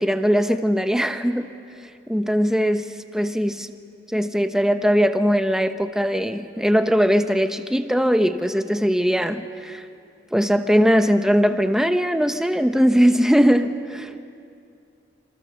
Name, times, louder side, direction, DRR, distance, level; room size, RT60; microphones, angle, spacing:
voice 1, 0.0-1.5 2.1-2.9 3.1-3.7 4.1-9.8 10.3-14.2, equal, 5° right, 8 dB, 0.9 m, -20 dB
27.0 x 26.5 x 7.0 m, 2.5 s
head